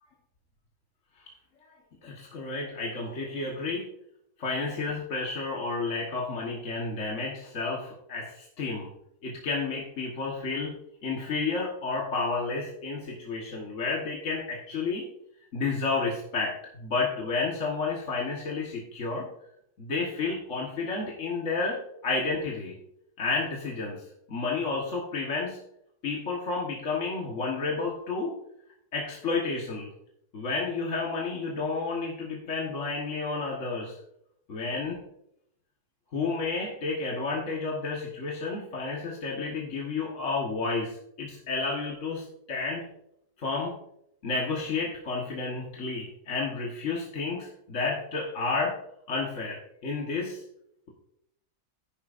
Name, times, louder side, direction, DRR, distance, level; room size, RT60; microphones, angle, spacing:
voice 1, 2.0-3.9 4.4-8.9 9.2-10.7 11.0-15.0 15.5-19.3 19.8-21.8 22.0-22.7 23.2-24.0 24.3-25.6 26.0-28.3 28.9-29.9 30.3-34.0 34.5-35.0 36.1-42.9 43.4-43.7 44.2-48.7 49.1-50.4, left 4 dB, 50° left, -3 dB, 1.7 m, -31 dB
11.0 x 10.5 x 2.5 m, 0.77 s
omnidirectional pair, 1.6 m